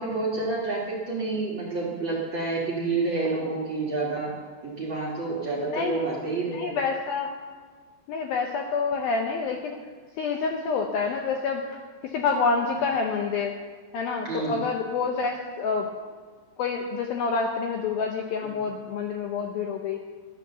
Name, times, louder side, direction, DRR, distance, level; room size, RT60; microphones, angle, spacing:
voice 1, 0.0-4.3 4.6-6.7 14.2-14.6 18.4-18.5, right 3 dB, 50° right, -4 dB, 1.4 m, -29 dB
voice 2, 6.5-7.3 8.1-9.7 10.2-13.5 13.9-15.9 16.6-20.0, left 5 dB, 80° left, 3 dB, 2.1 m, -27 dB
12.5 x 10.5 x 6.8 m, 1.5 s
omnidirectional pair, 5.3 m